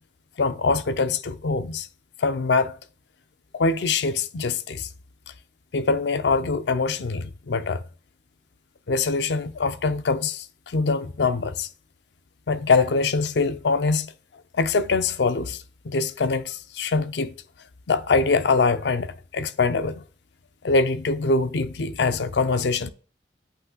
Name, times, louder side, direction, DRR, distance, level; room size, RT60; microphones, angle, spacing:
voice 1, 0.4-1.9 2.2-2.8 3.5-4.9 5.7-7.8 8.9-11.7 12.5-14.1 14.5-15.6 15.8-17.3 17.9-20.0 20.6-22.9, left 4 dB, 70° left, 0.5 m, -23 dB
8.3 x 3.1 x 3.8 m
head